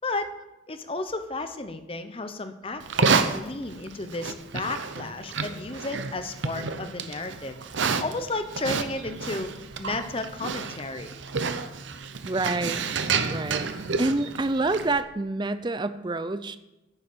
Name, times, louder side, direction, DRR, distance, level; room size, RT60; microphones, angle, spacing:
voice 1, 0.0-0.3 0.7-7.6 8.0-11.1, left 2 dB, 30° left, 9 dB, 0.8 m, -33 dB
Livestock farm animals working animals, 2.8-15.0, right 5 dB, 75° right, 0.8 m, -30 dB
voice 2, 12.2-12.8 13.2-13.7 14.0-16.6, right 2 dB, 25° right, 12 dB, 0.5 m, -27 dB
9.7 x 7.2 x 6.8 m, 0.96 s
head